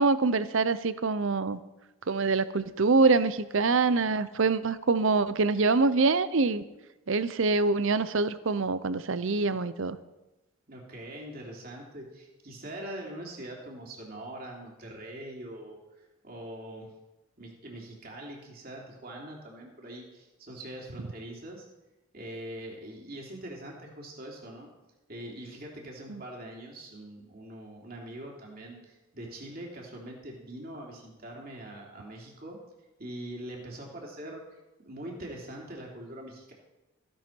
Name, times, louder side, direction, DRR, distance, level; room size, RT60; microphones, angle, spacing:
voice 1, 0.0-1.6 2.1-6.6 7.1-10.0 26.1-26.2, right 3 dB, 60° right, 15 dB, 0.6 m, -25 dB
voice 2, 10.7-15.8 16.2-16.9 17.4-21.6 22.1-24.7 25.1-32.6 33.0-36.5, right 1 dB, 40° right, -1 dB, 3.0 m, -43 dB
15.5 x 11.0 x 4.6 m, 1.0 s
head